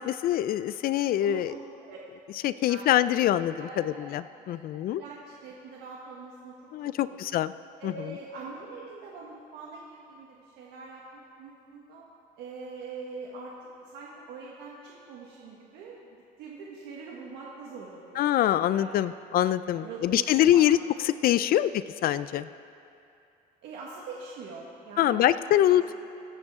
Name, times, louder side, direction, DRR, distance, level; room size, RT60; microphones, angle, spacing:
voice 1, 0.0-1.5 2.4-5.0 6.7-7.5 7.8-8.1 18.2-20.8 21.0-21.7 22.0-22.5 25.0-25.9, left 12 dB, 60° left, 15 dB, 0.4 m, -24 dB
voice 2, 1.2-2.0 2.7-3.1 3.5-4.6 4.9-6.5 6.8-7.2 7.8-12.1 12.4-13.5 13.8-18.3 18.7-18.9 19.6-20.6 21.0-21.1 21.4-21.5 23.6-25.3 25.7-25.9, right 4 dB, 90° right, -3 dB, 1.6 m, -43 dB
23.0 x 9.0 x 3.6 m, 2.7 s
cardioid pair, 110°, 17 cm